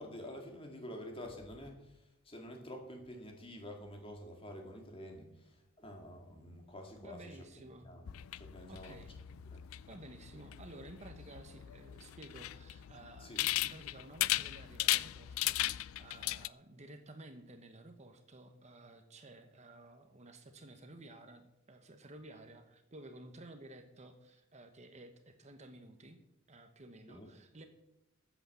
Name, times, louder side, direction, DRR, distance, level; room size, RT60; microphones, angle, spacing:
voice 1, 0.0-1.9 2.2-7.4 7.8-8.1 8.4-9.0 9.5-9.6 13.2-13.4 27.1-27.3, equal, 25° left, 2 dB, 2.6 m, -48 dB
voice 2, 7.0-7.9 8.7-9.1 9.9-26.2 26.5-27.7, right 2 dB, 35° right, 7 dB, 1.2 m, -53 dB
sound 1, 8.1-16.5, left 16 dB, 70° left, 0.4 m, -37 dB
14.0 x 8.3 x 7.0 m, 0.88 s
head